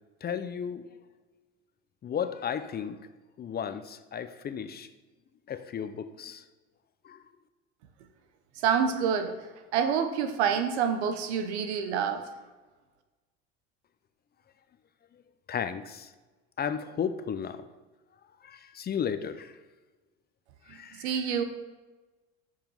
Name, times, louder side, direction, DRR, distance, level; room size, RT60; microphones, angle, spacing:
voice 1, 0.2-0.9 2.0-3.0 3.4-4.9 5.5-6.4 7.0-7.2 15.1-15.2 15.5-16.1 16.6-17.7 18.4-19.6 20.7-21.4, left 7 dB, 30° left, 11 dB, 0.6 m, -34 dB
voice 2, 8.6-9.4 9.7-12.2 20.7-21.4, right 7 dB, 85° right, 8 dB, 1.0 m, -27 dB
7.2 x 5.7 x 5.5 m, 1.2 s
supercardioid pair, 90°, 33 cm